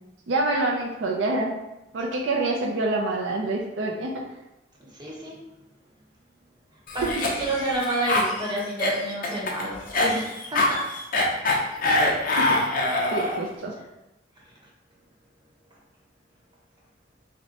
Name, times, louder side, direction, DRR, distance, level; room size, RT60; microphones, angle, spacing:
voice 1, 0.3-1.5 1.9-4.1 12.5-12.6 13.1-13.7, right 2 dB, 80° right, 0 dB, 0.5 m, -26 dB
voice 2, 4.8-5.4 6.9-7.1 7.4-10.9, right 1 dB, 25° right, -4 dB, 1.0 m, -29 dB
Cough, 6.9-13.5, left 2 dB, 50° left, 0.7 m, -24 dB
5.7 x 2.2 x 2.8 m, 0.94 s
head